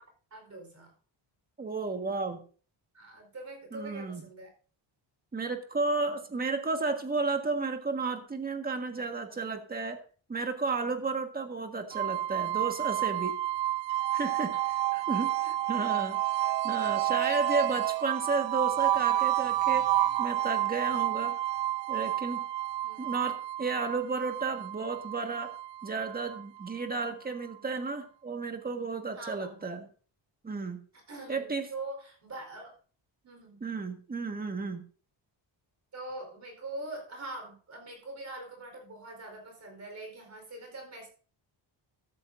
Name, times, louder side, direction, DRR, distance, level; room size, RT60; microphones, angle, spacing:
voice 1, 0.3-0.9 2.9-4.5 14.5-14.6 15.4-15.5 17.3-17.4 17.7-17.8 22.8-23.0 29.1-29.8 30.9-32.7 33.2-33.6 35.9-41.1, right 2 dB, 40° right, 2 dB, 4.3 m, -43 dB
voice 2, 1.6-2.4 3.7-4.2 5.3-10.0 10.3-13.4 14.1-19.9 20.2-21.4 21.9-22.4 23.0-25.5 25.8-29.9 30.4-30.8 31.3-31.7 33.6-34.8, right 4 dB, 20° right, 5 dB, 1.6 m, -33 dB
sound 1, 11.9-26.9, right 14 dB, 75° right, 0.5 m, -30 dB
14.0 x 13.5 x 2.6 m, 0.40 s
wide cardioid pair, 165°, 44 cm